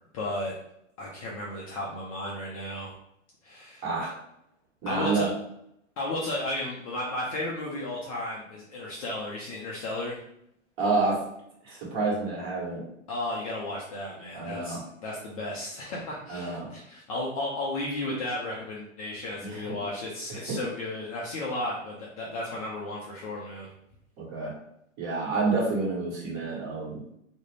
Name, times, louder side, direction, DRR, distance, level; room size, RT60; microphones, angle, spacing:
voice 1, 0.1-0.6 1.0-2.9 3.4-3.9 4.9-5.3 6.0-10.2 13.1-23.7, left 1 dB, 30° left, -4 dB, 0.4 m, -34 dB
voice 2, 3.8-4.1 4.8-5.3 10.8-11.2 11.6-12.8 14.3-14.8 16.3-16.7 19.4-19.7 20.3-20.6 24.2-24.5 25.0-27.0, right 3 dB, 35° right, -4 dB, 1.1 m, -29 dB
2.4 x 2.1 x 3.1 m, 0.76 s
hypercardioid pair, 125°, 38 cm